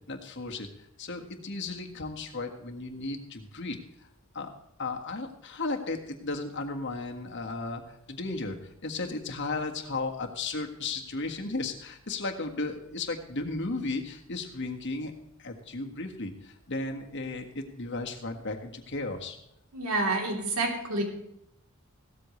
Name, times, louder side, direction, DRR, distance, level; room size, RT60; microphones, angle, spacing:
voice 1, 0.1-0.7 1.0-4.1 4.3-4.5 4.8-15.1 15.4-19.4, left 3 dB, 55° left, 3 dB, 1.7 m, -35 dB
voice 2, 19.7-21.0, right 2 dB, 90° right, 1 dB, 3.3 m, -28 dB
16.5 x 13.5 x 3.2 m, 0.79 s
head